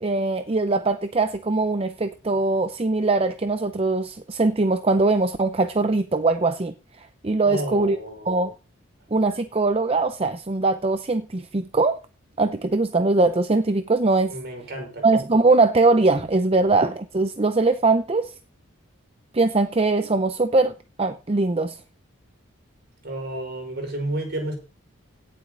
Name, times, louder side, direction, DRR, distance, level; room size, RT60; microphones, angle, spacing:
voice 1, 0.0-6.7 7.2-8.0 8.3-8.5 9.1-12.0 12.4-14.3 15.0-18.3 19.3-21.8, right 3 dB, 30° right, 0.6 m, -21 dB
voice 2, 7.4-8.4 14.3-15.1 23.0-24.5, right 1 dB, 55° right, 5.4 m, -31 dB
17.0 x 7.6 x 3.9 m
head